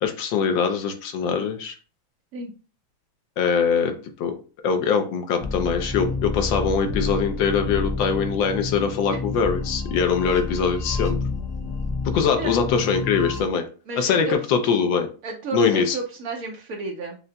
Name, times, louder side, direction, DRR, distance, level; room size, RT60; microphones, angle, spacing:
voice 1, 0.0-1.7 3.4-3.9 4.2-4.3 4.6-11.2 12.0-13.6 14.0-15.1 15.5-16.0, left 6 dB, 75° left, 6 dB, 1.3 m, -22 dB
sound 1, 5.4-13.4, left 3 dB, 60° left, 1.4 m, -29 dB
voice 2, 13.9-14.3 15.2-17.2, right 3 dB, 60° right, 2 dB, 1.0 m, -32 dB
6.6 x 2.5 x 2.2 m, 0.36 s
omnidirectional pair, 2.2 m